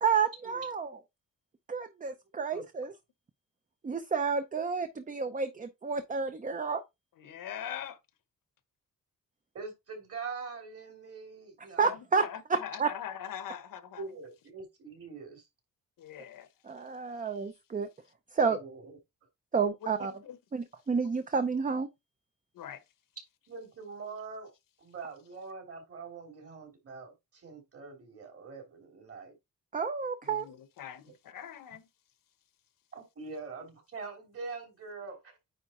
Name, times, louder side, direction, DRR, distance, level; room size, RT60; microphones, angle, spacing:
voice 1, 0.0-0.9 1.7-2.9 3.8-6.8 11.8-12.9 16.6-17.9 18.3-18.6 19.5-20.1 20.5-21.9 29.7-30.5, right 5 dB, 25° right, 0.6 m, -30 dB
voice 2, 7.2-8.0 11.8-12.0 12.2-14.0 16.0-16.5 20.2-20.4 22.5-22.8 30.3-31.9, left 9 dB, 80° left, 1.0 m, -42 dB
voice 3, 9.5-11.9 14.0-15.5 18.5-18.9 20.0-20.1 23.5-24.5 24.8-29.4 32.9-35.4, right 4 dB, 45° right, 3.1 m, -43 dB
9.3 x 3.5 x 4.3 m
wide cardioid pair, 160°, 33 cm